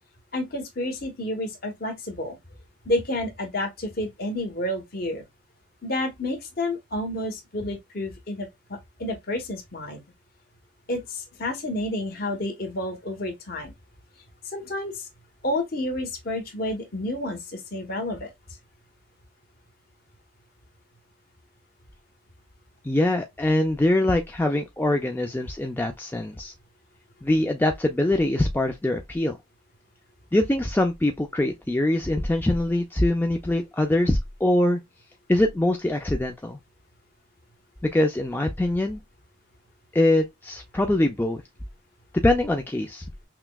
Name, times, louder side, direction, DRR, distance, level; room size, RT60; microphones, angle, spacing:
voice 1, 0.3-2.4 2.8-5.2 5.8-10.0 10.9-13.7 14.4-15.1 15.4-18.3, left 1 dB, 50° left, 1.0 m, -30 dB
voice 2, 22.8-26.5 27.2-29.4 30.3-34.8 35.3-36.6 37.8-39.0 39.9-41.4 42.2-43.1, left 1 dB, 10° left, 0.3 m, -23 dB
5.7 x 2.1 x 2.2 m
head